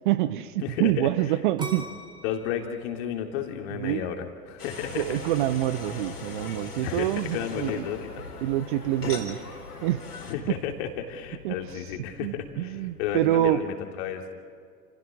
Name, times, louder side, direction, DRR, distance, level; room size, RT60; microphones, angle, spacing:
voice 1, 0.0-1.8 3.8-4.0 5.0-7.8 8.4-9.4 9.8-10.0 11.4-11.5 12.2-13.6, right 14 dB, 35° right, 14 dB, 0.6 m, -26 dB
voice 2, 0.6-1.4 1.7-1.8 2.2-5.2 6.8-8.3 9.0-9.1 10.3-14.2, left 9 dB, 40° left, 3 dB, 2.9 m, -33 dB
sound 1, 1.6-4.5 5.0-5.5, right 2 dB, 10° right, 3.6 m, -41 dB
sound 2, 4.6-10.3, left 4 dB, 70° left, 3.7 m, -40 dB
sound 3, 4.8-13.6, left 3 dB, 90° left, 1.7 m, -46 dB
29.5 x 28.0 x 3.8 m, 2.2 s
figure-of-eight pair, 100°, 47 cm